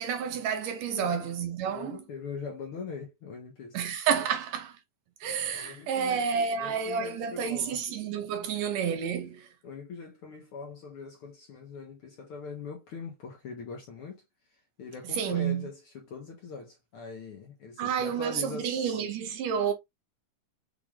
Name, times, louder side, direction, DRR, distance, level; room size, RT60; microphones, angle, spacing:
voice 1, 0.0-2.0 3.7-4.8 5.2-9.5 15.1-15.7 17.8-19.7, right 7 dB, 75° right, 1.8 m, -30 dB
voice 2, 1.6-3.8 4.2-4.3 5.4-7.8 8.4-8.6 9.6-14.2 14.5-19.0, left 5 dB, 70° left, 1.4 m, -42 dB
6.0 x 2.4 x 3.2 m
omnidirectional pair, 3.4 m